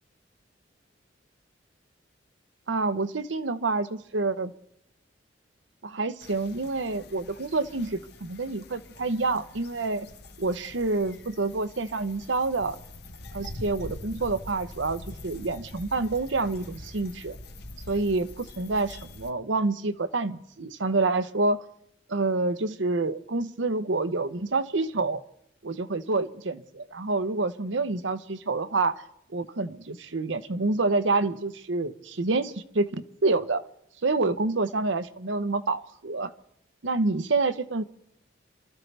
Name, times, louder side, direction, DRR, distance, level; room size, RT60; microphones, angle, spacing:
voice 1, 2.7-4.5 5.8-10.1 10.4-12.8 13.3-17.4 17.9-21.6 22.1-25.2 25.6-28.9 29.3-32.9 33.2-33.6 34.0-36.3 36.8-37.8, right 3 dB, 75° right, 11 dB, 0.9 m, -27 dB
sound 1, 6.2-19.3, left 2 dB, 60° left, 1.2 m, -44 dB
28.5 x 13.5 x 3.4 m, 0.74 s
head